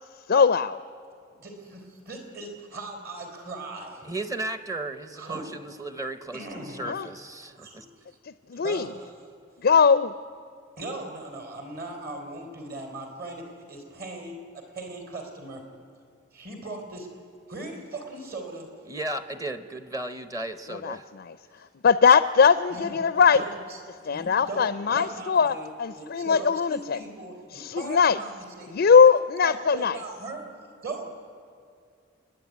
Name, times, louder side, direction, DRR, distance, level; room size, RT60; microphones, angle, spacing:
voice 1, 0.3-0.8 6.8-7.1 8.2-8.9 9.6-10.2 20.7-23.4 24.0-27.0 27.5-28.2 28.7-30.0, left 6 dB, 55° left, 14 dB, 0.4 m, -21 dB
voice 2, 1.4-4.1 5.2-5.5 6.3-6.9 7.5-8.2 8.5-9.1 10.8-15.6 16.3-17.1 17.5-18.9 22.7-23.0 23.3-23.6 24.0-25.7 26.0-28.9 29.4-31.0, right 2 dB, 50° right, 3 dB, 3.6 m, -39 dB
voice 3, 4.0-7.9 18.9-21.1, right 2 dB, 15° right, 10 dB, 0.8 m, -35 dB
30.0 x 10.5 x 9.4 m, 2.3 s
head